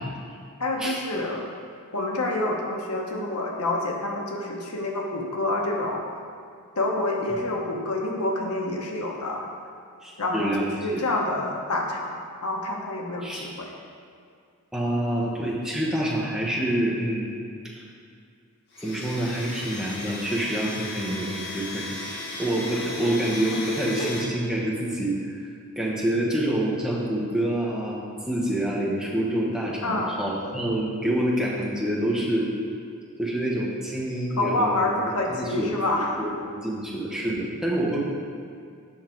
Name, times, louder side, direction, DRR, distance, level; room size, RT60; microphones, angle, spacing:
voice 1, 0.6-1.5 1.9-6.1 6.7-9.5 10.2-13.7 23.0-23.1 23.5-23.7 24.0-24.1 29.8-30.1 34.4-36.1, left 2 dB, 85° left, 0 dB, 1.1 m, -27 dB
voice 2, 10.0-10.7 10.9-11.0 13.2-13.5 14.7-17.3 18.8-21.9 22.4-25.4 25.8-32.5 33.2-34.8 35.3-38.0, right 1 dB, 5° right, -5 dB, 1.1 m, -27 dB
Domestic sounds home sounds, 18.7-24.2, left 2 dB, 50° left, 1.3 m, -36 dB
7.8 x 5.6 x 4.5 m, 2.3 s
head